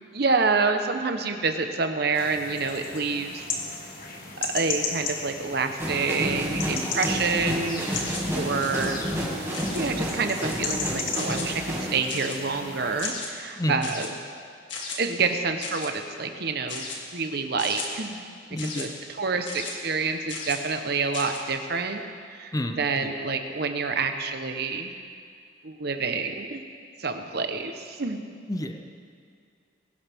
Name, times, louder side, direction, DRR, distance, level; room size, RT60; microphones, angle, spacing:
voice 1, 0.1-3.4 4.5-9.0 9.7-14.1 15.0-16.9 17.1-18.3 18.6-18.9 19.2-22.0 22.3-24.9 25.6-26.6 27.0-28.2, right 4 dB, 60° right, 6 dB, 1.0 m, -28 dB
sound 1, 2.1-13.1, left 4 dB, 50° left, 1.6 m, -35 dB
sound 2, 5.8-12.0, equal, 15° right, 2.1 m, -30 dB
sound 3, 7.9-8.3 8.6-8.9 9.5-9.9 10.3-10.7 11.2-11.5 12.1-12.5 13.0-13.3 13.8-14.1 14.7-15.0 15.6-15.9 16.7-17.0 17.6-17.9 18.6-18.9 19.5-19.7 20.3-20.6 21.1-21.4, left 4 dB, 85° left, 2.0 m, -36 dB
voice 2, 13.6-13.9 18.5-19.0 22.5-23.1 28.5-28.9, left 1 dB, 20° left, 6 dB, 0.6 m, -30 dB
21.0 x 11.5 x 3.6 m, 2.3 s
head